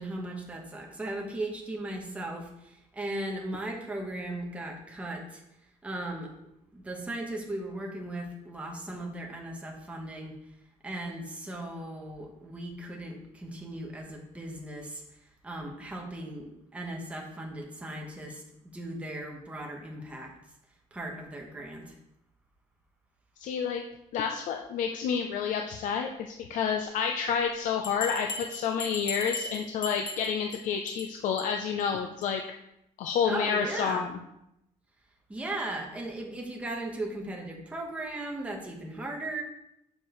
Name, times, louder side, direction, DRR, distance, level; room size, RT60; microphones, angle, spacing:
voice 1, 0.0-5.4 5.8-6.3 6.7-10.3 10.8-15.0 15.4-20.3 20.9-21.9 33.2-34.1 35.3-39.4, right 1 dB, 10° right, 0 dB, 1.0 m, -37 dB
voice 2, 23.4-23.8 24.1-32.4 33.0-34.1, left 7 dB, 65° left, 3 dB, 0.5 m, -29 dB
Bell, 27.8-30.6 30.9-31.1 31.4-31.5 31.8-31.9 32.2-32.3, left 3 dB, 35° left, 1.2 m, -37 dB
7.1 x 6.7 x 3.1 m, 0.82 s
cardioid pair, 175°, 14 cm